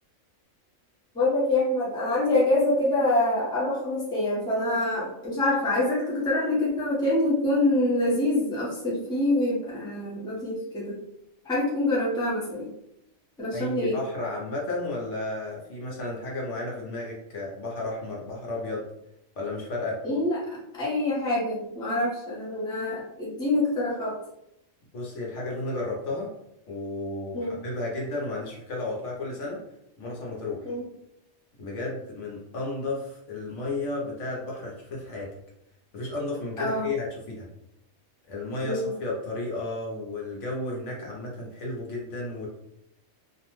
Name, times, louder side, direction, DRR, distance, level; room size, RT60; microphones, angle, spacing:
voice 1, 1.1-11.0 11.4-12.7 13.4-14.0 20.0-24.2 27.3-27.5 30.6-30.8 36.6-36.9 38.6-38.9, left 1 dB, 5° left, -7 dB, 0.6 m, -25 dB
voice 2, 13.5-18.9 19.3-20.0 24.9-26.3 26.7-29.6 30.0-30.7 31.6-35.3 35.9-37.5 38.2-42.5, left 2 dB, 65° left, -3 dB, 1.0 m, -33 dB
2.6 x 2.1 x 3.0 m, 0.81 s
omnidirectional pair, 1.4 m